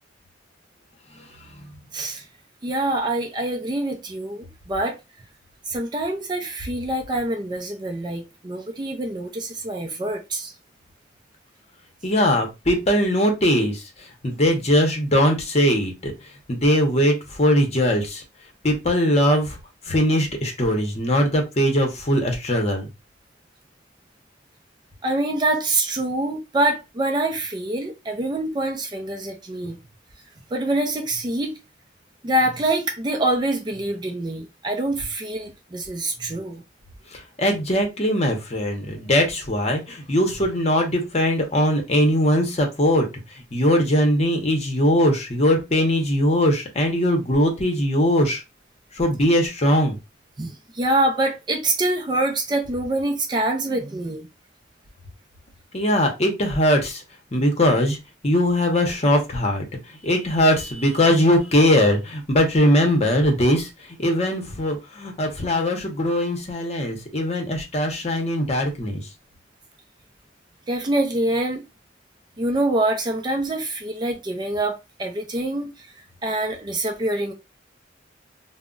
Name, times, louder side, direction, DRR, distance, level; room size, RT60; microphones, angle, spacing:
voice 1, 1.9-2.2 2.6-5.0 5.7-10.5 25.0-29.8 30.5-31.6 32.2-36.6 50.4-54.3 70.7-71.6 72.4-75.9 76.2-77.3, right 1 dB, 25° right, 0.4 m, -25 dB
voice 2, 12.0-13.8 14.2-16.1 16.5-18.2 18.6-19.6 19.9-22.9 37.1-43.1 43.5-48.4 49.0-49.9 55.7-57.0 57.3-58.0 58.2-59.7 60.0-63.7 64.0-69.0, equal, 35° left, 0.8 m, -20 dB
2.3 x 2.0 x 3.7 m
head